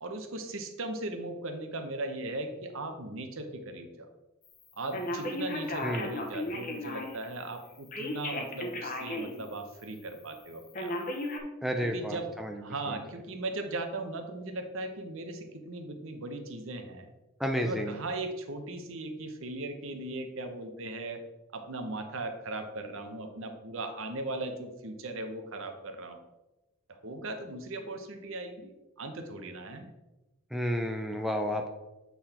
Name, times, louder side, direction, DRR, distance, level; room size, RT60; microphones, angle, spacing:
voice 1, 0.0-4.1 4.8-11.0 11.9-12.3 12.6-17.1 17.5-21.2 21.5-26.2 26.9-29.9, right 2 dB, 60° right, 6 dB, 0.9 m, -38 dB
Telephone, 4.9-7.3 7.9-9.4 9.8-9.9 10.7-11.4, left 1 dB, 40° left, 1.0 m, -35 dB
voice 2, 11.6-12.6 12.9-13.0 17.4-17.9 30.5-31.7, equal, ahead, 3 dB, 0.4 m, -31 dB
8.4 x 4.0 x 4.3 m, 1.0 s
head